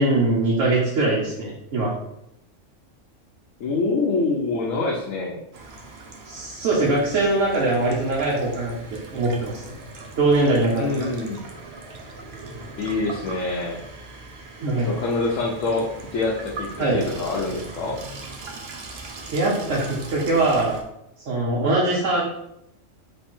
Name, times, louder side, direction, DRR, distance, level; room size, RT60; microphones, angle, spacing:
voice 1, 0.0-1.9 6.2-9.7 10.2-11.1 14.6-14.9 16.8-17.0 19.3-20.8 21.2-22.2, right 2 dB, 80° right, -5 dB, 1.3 m, -22 dB
voice 2, 3.6-5.4 10.7-11.4 12.8-13.8 14.7-18.0, left 3 dB, 85° left, -3 dB, 1.1 m, -25 dB
Water tap faucet / Sink (filling or washing), 5.5-20.8, right 3 dB, 60° right, 0.9 m, -40 dB
3.3 x 3.3 x 4.3 m, 0.79 s
omnidirectional pair, 1.3 m